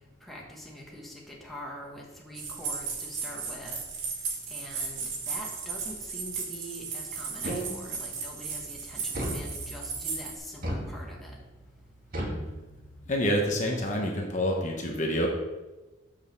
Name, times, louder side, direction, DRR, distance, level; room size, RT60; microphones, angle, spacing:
voice 1, 0.2-3.8 4.5-11.3, equal, ahead, -3 dB, 1.5 m, -44 dB
sound 1, 2.3-10.4, right 5 dB, 90° right, 2.2 m, -35 dB
sound 2, 7.4-8.1 9.1-10.0 10.6-11.4 12.1-13.1, right 1 dB, 45° right, 1.9 m, -35 dB
voice 2, 13.1-15.3, equal, 40° left, 1 dB, 1.1 m, -27 dB
6.6 x 5.6 x 6.5 m, 1.1 s
head